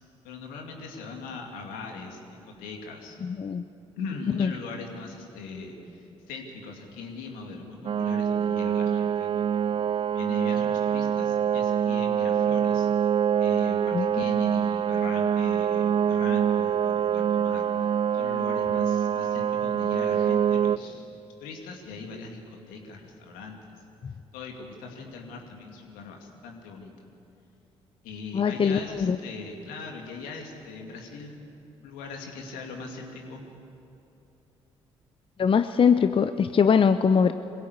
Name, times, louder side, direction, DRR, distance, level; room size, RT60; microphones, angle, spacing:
voice 1, 0.2-2.2 2.6-3.2 4.0-9.7 10.1-13.1 13.4-17.9 18.1-23.6 24.3-26.9 28.0-31.4 31.8-33.4, left 4 dB, 75° left, 2 dB, 2.5 m, -40 dB
voice 2, 3.2-3.6 4.4-4.5 13.9-14.1 28.3-29.2 35.4-37.3, left 6 dB, 40° left, 10 dB, 0.7 m, -22 dB
sound 1, 7.8-20.8, right 8 dB, 35° right, 0.5 m, -25 dB
21.5 x 16.0 x 8.3 m, 2.9 s
hypercardioid pair, 50°, 14 cm